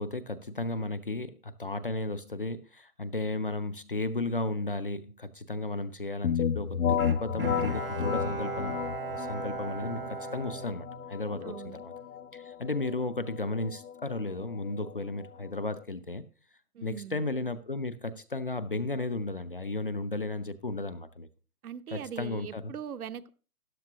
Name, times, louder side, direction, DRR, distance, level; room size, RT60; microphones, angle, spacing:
voice 1, 0.0-8.8 9.1-11.9 12.3-16.2 16.8-21.3 21.9-22.7, left 2 dB, 40° left, 0.4 m, -34 dB
sound 1, 6.2-15.8, left 8 dB, 70° left, 0.7 m, -33 dB
Bowed string instrument, 7.0-11.5 11.9-12.0, right 7 dB, 40° right, 0.6 m, -38 dB
voice 2, 11.4-11.8 16.7-17.2 21.6-23.3, right 9 dB, 70° right, 0.8 m, -40 dB
13.5 x 9.3 x 2.7 m
hypercardioid pair, 165°, 45 cm